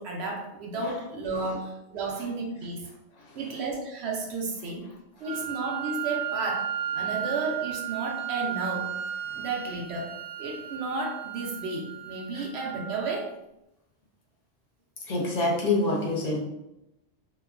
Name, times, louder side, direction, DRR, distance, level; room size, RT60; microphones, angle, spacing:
voice 1, 0.0-2.9 3.3-4.8 5.2-6.7 6.9-9.0 9.4-10.1 10.4-13.3, right 3 dB, 80° right, -1 dB, 0.9 m, -32 dB
Wind instrument woodwind instrument, 5.2-13.2, right 10 dB, 60° right, 0.7 m, -34 dB
voice 2, 15.1-16.4, left 2 dB, 45° left, -2 dB, 0.6 m, -26 dB
3.0 x 2.1 x 2.3 m, 0.88 s
omnidirectional pair, 1.1 m